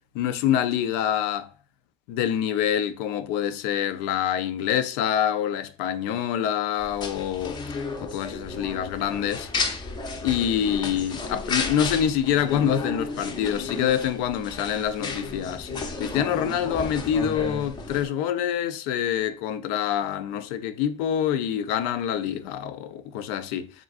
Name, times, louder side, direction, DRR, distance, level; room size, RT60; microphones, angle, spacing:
voice 1, 0.1-1.5 2.1-7.6 8.0-9.5 10.2-15.7 16.0-23.7, left 9 dB, 80° left, 0.5 m, -26 dB
sound 1, 6.8-18.1, left 3 dB, 30° left, 0.6 m, -33 dB
3.7 x 3.4 x 2.4 m
cardioid pair, 140°, 15 cm